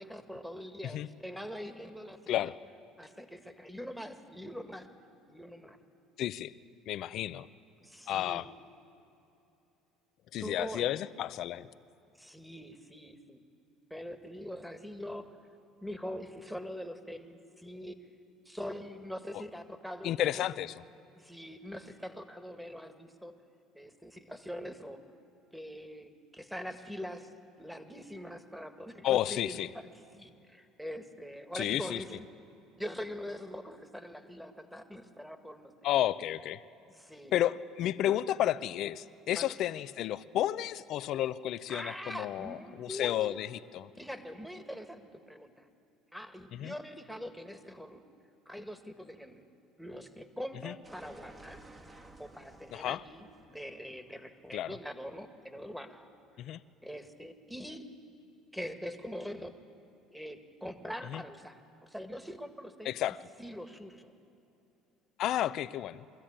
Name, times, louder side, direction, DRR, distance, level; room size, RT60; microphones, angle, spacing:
voice 1, 0.0-2.5 3.0-4.9 5.3-5.8 7.8-8.5 10.4-10.9 12.2-13.4 13.9-15.3 15.8-17.9 18.4-20.4 21.1-23.3 23.7-25.0 25.5-27.3 27.6-29.7 30.1-32.2 32.8-35.7 36.9-37.3 39.4-39.5 41.7-43.4 44.0-45.7 46.1-48.0 48.4-49.4 49.8-51.6 52.2-56.1 56.8-57.8 58.5-59.5 60.1-63.0 63.4-64.1, equal, ahead, 7 dB, 1.7 m, -43 dB
voice 2, 6.2-6.5 6.9-7.5 8.1-8.5 10.3-11.7 20.0-20.7 29.0-29.7 31.5-32.0 35.8-36.6 37.3-43.9 46.5-46.7 50.6-50.7 52.7-53.0 54.5-54.8 56.4-56.6 61.1-61.2 62.8-63.2 65.2-66.1, left 12 dB, 60° left, 16 dB, 0.5 m, -32 dB
sound 1, 50.8-55.6, right 2 dB, 25° right, 1.6 m, -55 dB
22.5 x 14.0 x 8.8 m, 2.8 s
supercardioid pair, 90°, 0 cm